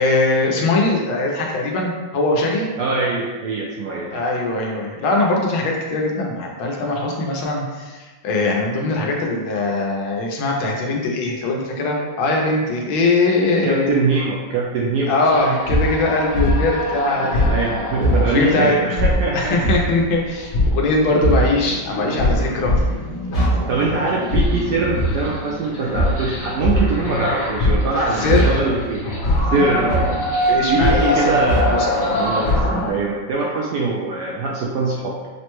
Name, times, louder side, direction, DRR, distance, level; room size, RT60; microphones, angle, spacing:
voice 1, 0.0-2.7 4.1-14.0 15.1-17.5 18.2-18.7 19.3-22.8 28.1-28.6 30.5-31.9, left 2 dB, 85° left, 0 dB, 1.5 m, -21 dB
voice 2, 2.8-4.2 13.6-15.2 17.2-19.9 23.7-29.0 29.5-30.1 30.7-31.8 32.2-35.1, right 3 dB, 75° right, -3 dB, 1.0 m, -23 dB
sound 1, 15.3-32.9, equal, 55° left, 1.1 m, -21 dB
5.8 x 2.1 x 3.0 m, 1.3 s
omnidirectional pair, 2.2 m